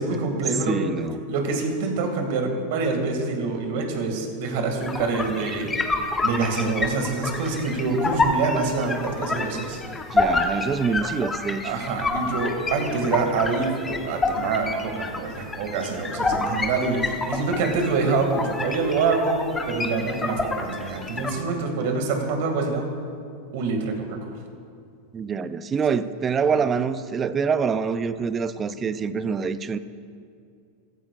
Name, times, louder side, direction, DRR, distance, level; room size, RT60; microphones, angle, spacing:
voice 1, 0.0-0.8 1.3-5.7 6.2-9.8 11.6-22.9 23.5-24.4 26.5-26.6, right 4 dB, 65° right, 3 dB, 2.2 m, -26 dB
voice 2, 0.7-1.2 10.1-11.7 25.1-29.8, right 6 dB, 20° right, 13 dB, 0.4 m, -25 dB
sound 1, 4.8-21.4, left 3 dB, 10° left, 1.0 m, -28 dB
15.5 x 15.0 x 2.5 m, 2.3 s
supercardioid pair, 140°, 0 cm